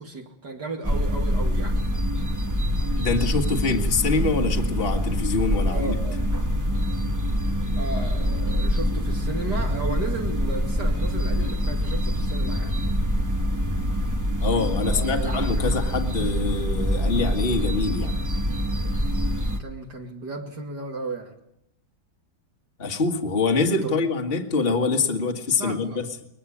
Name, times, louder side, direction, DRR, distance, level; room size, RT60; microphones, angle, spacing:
voice 1, 0.0-1.8 5.7-6.2 7.8-12.8 14.8-15.7 16.2-16.3 19.6-21.3 23.8-24.1 25.6-26.0, right 3 dB, 55° right, 1 dB, 2.9 m, -34 dB
sound 1, 0.8-19.6, equal, 10° right, 1.0 m, -25 dB
voice 2, 2.9-6.0 14.4-18.2 22.8-26.1, left 4 dB, 30° left, 3 dB, 2.0 m, -25 dB
22.0 x 21.0 x 8.7 m, 0.75 s
omnidirectional pair, 2.1 m